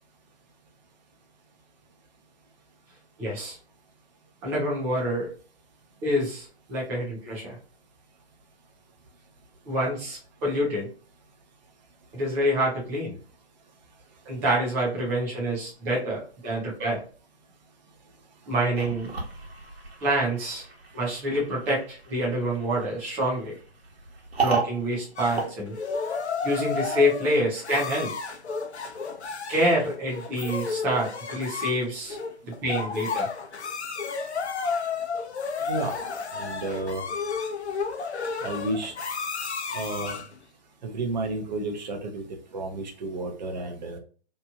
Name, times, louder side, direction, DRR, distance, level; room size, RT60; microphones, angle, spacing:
voice 1, 3.2-3.6 4.4-5.3 6.0-7.6 9.7-10.9 12.1-13.2 14.3-17.0 18.5-19.1 20.0-20.6 20.9-23.6 24.4-25.7 26.4-28.1 29.5-32.2 32.4-33.3, equal, 5° right, -4 dB, 0.5 m, -27 dB
sound 1, 18.7-26.4, right 5 dB, 65° right, 1.2 m, -35 dB
sound 2, 25.2-40.4, left 5 dB, 75° left, 0.7 m, -32 dB
voice 2, 35.6-36.0 36.3-37.0 38.4-38.9 39.7-40.2 40.8-42.3 42.5-44.0, right 2 dB, 40° right, 4 dB, 0.8 m, -31 dB
3.0 x 2.6 x 2.3 m, 0.41 s
hypercardioid pair, 140°, 33 cm